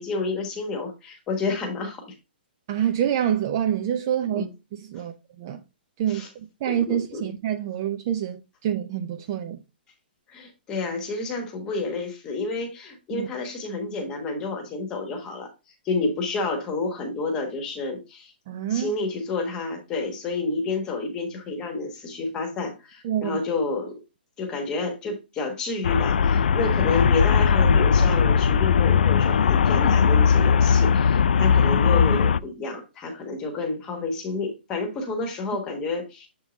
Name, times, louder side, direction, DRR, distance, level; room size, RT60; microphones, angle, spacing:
voice 1, 0.0-2.1 4.3-4.5 4.9-5.0 6.1-6.3 6.6-7.2 10.3-15.5 15.8-18.3 18.7-24.0 24.4-36.3, left 3 dB, 10° left, 1.2 m, -29 dB
voice 2, 2.7-5.6 6.0-9.6 13.1-13.3 18.5-18.9 23.0-23.4, right 10 dB, 25° right, 0.4 m, -27 dB
Traffic noise roadway noise, 25.8-32.4, left 6 dB, 70° left, 0.4 m, -19 dB
7.2 x 3.7 x 3.8 m
hypercardioid pair, 175°, 6 cm